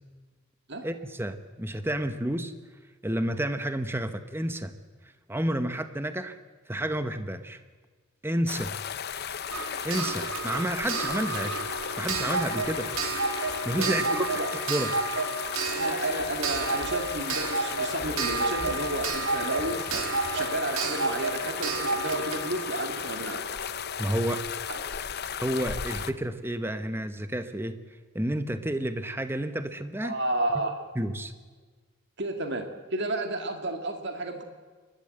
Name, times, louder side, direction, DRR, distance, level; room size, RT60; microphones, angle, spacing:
voice 1, 0.8-2.5 3.0-4.7 5.3-6.4 6.7-7.6 8.2-8.8 9.8-11.6 12.0-12.9 13.6-14.3 14.7-14.9 24.0-24.4 25.4-27.8 28.1-30.2 31.0-31.3, right 1 dB, 10° right, 10 dB, 0.9 m, -30 dB
sound 1, 8.5-26.1, left 8 dB, 50° left, 0.7 m, -35 dB
Clock, 9.5-24.1 25.2-25.3 25.6-25.7, right 4 dB, 80° right, 1.9 m, -31 dB
sound 2, 11.6-14.6 15.2-15.3 15.6-15.8 16.2-22.2 22.5-22.6 22.9-23.0 23.4-23.5 24.0-24.1 24.3-24.7 25.0-26.0, equal, 30° right, 4.6 m, -50 dB
voice 2, 13.8-14.5 15.7-20.1 20.3-23.4 24.7-24.8 30.0-30.7 32.2-34.4, right 2 dB, 55° right, 5 dB, 2.0 m, -32 dB
28.5 x 12.5 x 7.8 m, 1.4 s
head